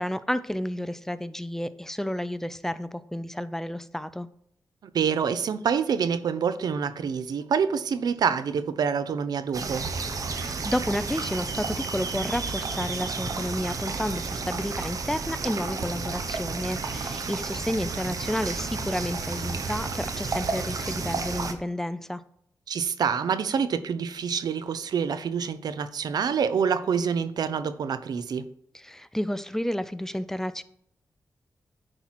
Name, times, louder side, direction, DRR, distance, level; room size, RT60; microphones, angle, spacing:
voice 1, 0.0-4.3 10.3-22.2 28.7-30.6, equal, 5° left, 14 dB, 0.4 m, -31 dB
voice 2, 4.9-9.9 22.7-28.5, right 6 dB, 85° right, 13 dB, 0.6 m, -26 dB
sound 1, 9.5-21.5, right 4 dB, 60° right, 0.9 m, -32 dB
9.8 x 4.5 x 4.3 m, 0.70 s
wide cardioid pair, 90°, 7 cm